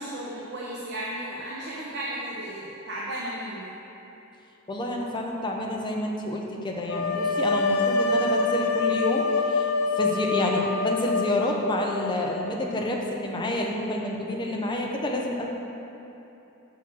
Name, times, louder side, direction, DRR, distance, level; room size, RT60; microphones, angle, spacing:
voice 1, 0.0-3.7, right 1 dB, 50° right, -5 dB, 0.8 m, -34 dB
voice 2, 4.7-9.7 10.0-15.5, left 1 dB, 20° left, 0 dB, 0.6 m, -28 dB
sound 1, 6.9-12.8, left 3 dB, 75° left, 0.4 m, -26 dB
6.0 x 4.2 x 6.1 m, 3.0 s
head